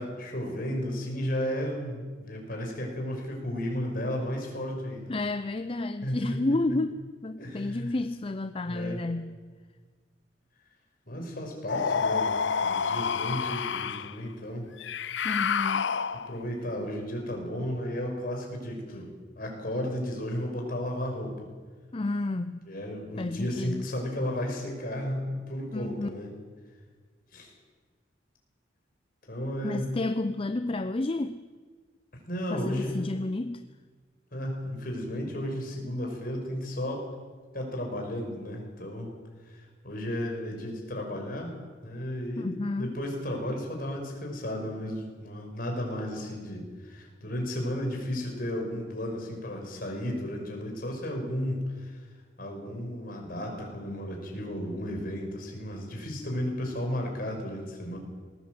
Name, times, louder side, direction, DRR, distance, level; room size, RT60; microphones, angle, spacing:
voice 1, 0.0-5.1 6.0-6.4 7.4-7.9 8.6-9.0 11.1-14.7 16.1-21.5 22.7-26.4 27.3-27.5 29.3-30.0 32.3-33.0 34.3-37.1 37.5-39.1 39.5-52.0 52.4-58.0, equal, 50° left, 1 dB, 5.6 m, -34 dB
voice 2, 5.1-9.3 15.2-15.8 21.9-22.6 23.2-23.9 25.7-26.1 29.6-31.4 32.5-33.6 42.4-42.9, left 2 dB, 30° left, 11 dB, 0.5 m, -31 dB
sound 1, 11.7-14.1 14.8-16.5, left 6 dB, 75° left, 0.6 m, -28 dB
20.5 x 18.5 x 7.8 m, 1.5 s
head